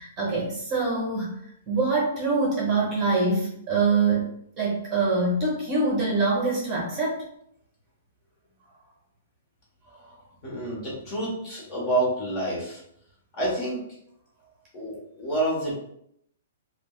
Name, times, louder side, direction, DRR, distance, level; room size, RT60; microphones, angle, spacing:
voice 1, 0.0-1.4 1.7-4.3 4.6-7.2, right 3 dB, 25° right, -3 dB, 0.9 m, -24 dB
voice 2, 10.4-12.8 13.3-13.8 14.7-15.9, right 1 dB, 30° left, -5 dB, 1.2 m, -28 dB
3.4 x 2.2 x 2.3 m, 0.73 s
hypercardioid pair, 160°, 0 cm